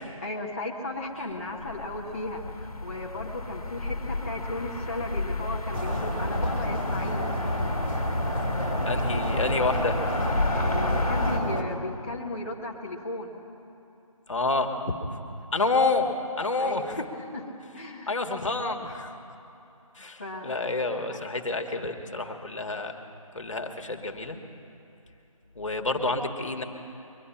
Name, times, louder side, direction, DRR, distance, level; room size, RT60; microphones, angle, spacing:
voice 1, 0.2-7.3 10.5-13.3 16.6-17.0 17.3-17.4 17.7-18.2 20.2-20.6 21.1-21.2, left 2 dB, 25° left, -5 dB, 1.0 m, -35 dB
sound 1, 1.1-11.4, left 2 dB, 80° left, 1.3 m, -33 dB
sound 2, 5.7-11.6, equal, 15° right, 1.3 m, -29 dB
voice 2, 8.8-10.0 14.3-15.0 15.5-16.1 16.4-17.1 18.1-19.1 20.0-22.9 23.3-24.4 25.5-26.6, left 3 dB, 60° left, 4 dB, 1.5 m, -28 dB
23.0 x 10.0 x 5.8 m, 2.9 s
figure-of-eight pair, 175°, 18 cm